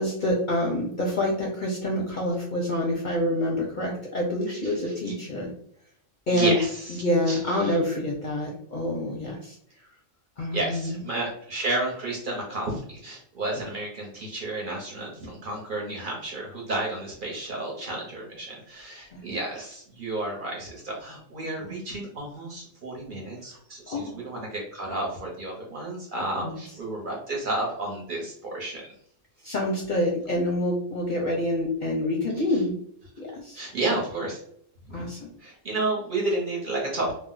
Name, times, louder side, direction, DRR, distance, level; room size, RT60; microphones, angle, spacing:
voice 1, 0.0-5.5 6.3-6.6 7.0-9.6 10.4-11.0 19.1-19.2 21.6-21.7 23.9-24.2 26.4-26.5 29.4-32.7 33.2-33.6 34.9-35.3, left 1 dB, 50° left, -2 dB, 0.6 m, -27 dB
voice 2, 4.5-5.1 6.3-7.8 10.5-28.8 33.5-34.4 34.9-35.0 35.4-37.1, right 2 dB, 50° right, -2 dB, 0.8 m, -31 dB
2.5 x 2.0 x 3.8 m, 0.66 s
omnidirectional pair, 1.3 m